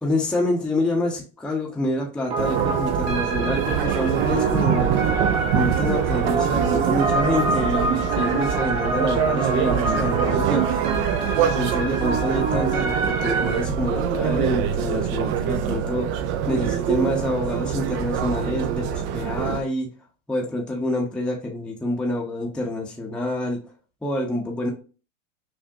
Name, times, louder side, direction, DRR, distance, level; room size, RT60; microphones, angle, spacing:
voice 1, 0.0-4.9 5.5-10.7 11.6-16.1 16.5-19.9 20.3-23.6 24.0-24.7, left 1 dB, 5° left, -1 dB, 0.7 m, -27 dB
sound 1, 2.3-13.6, right 3 dB, 60° right, 1.4 m, -26 dB
sound 2, 2.4-19.6, right 9 dB, 35° right, 0.4 m, -25 dB
6.0 x 2.1 x 2.6 m, 0.34 s
hypercardioid pair, 120°, 38 cm